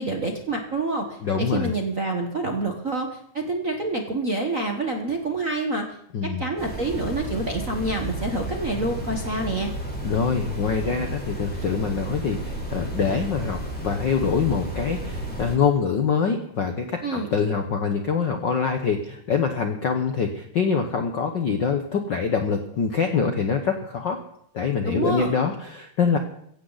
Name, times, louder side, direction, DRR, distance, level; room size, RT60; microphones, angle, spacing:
voice 1, 0.0-5.9 6.2-9.7 17.0-17.3 24.8-25.3, right 2 dB, 40° right, 2 dB, 1.1 m, -27 dB
voice 2, 1.2-1.7 6.1-6.4 10.0-24.2 24.5-26.2, left 5 dB, 60° left, 5 dB, 1.2 m, -24 dB
sound 1, 6.6-15.6, right 1 dB, 5° left, 4.0 m, -32 dB
16.5 x 16.0 x 4.1 m, 0.71 s
omnidirectional pair, 3.4 m